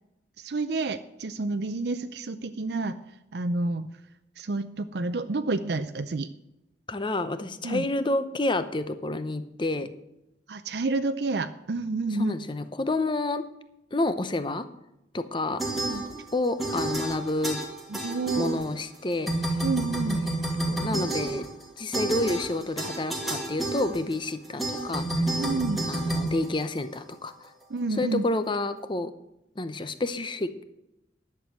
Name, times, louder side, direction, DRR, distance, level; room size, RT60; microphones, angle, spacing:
voice 1, 0.4-3.0 3.3-3.9 4.4-6.3 7.6-7.9 10.5-12.3 15.7-16.0 17.9-18.8 19.6-20.2 25.4-25.8 27.7-28.2, right 3 dB, 65° right, 9 dB, 0.5 m, -29 dB
voice 2, 6.9-9.9 12.2-13.4 13.9-14.6 15.1-15.6 16.3-17.6 18.4-19.6 20.7-21.4 21.8-25.4 25.9-27.5 28.0-29.1 29.6-30.6, left 2 dB, 25° left, 11 dB, 0.7 m, -29 dB
sound 1, 15.6-16.3 16.6-19.0 19.3-27.1, right 1 dB, ahead, 2.0 m, -30 dB
11.0 x 6.9 x 7.5 m, 0.88 s
head